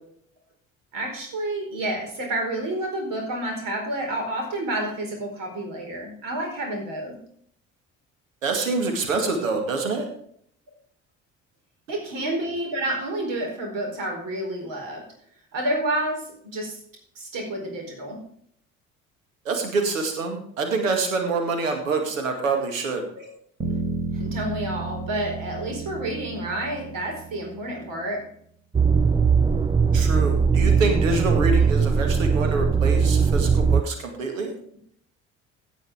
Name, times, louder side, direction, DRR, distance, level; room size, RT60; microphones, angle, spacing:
voice 1, 0.9-7.1 11.9-15.1 15.5-16.8 17.1-18.2 23.1-23.3 24.1-28.3, right 1 dB, 55° right, 1 dB, 4.6 m, -29 dB
voice 2, 8.4-10.0 19.5-23.0 29.9-34.5, right 3 dB, 80° right, 5 dB, 2.2 m, -26 dB
sound 1, 23.6-28.0, right 3 dB, 30° right, 3.6 m, -32 dB
sound 2, 28.7-33.8, right 5 dB, 10° right, 0.5 m, -20 dB
17.0 x 5.8 x 4.9 m, 0.62 s
figure-of-eight pair, 50°, 39 cm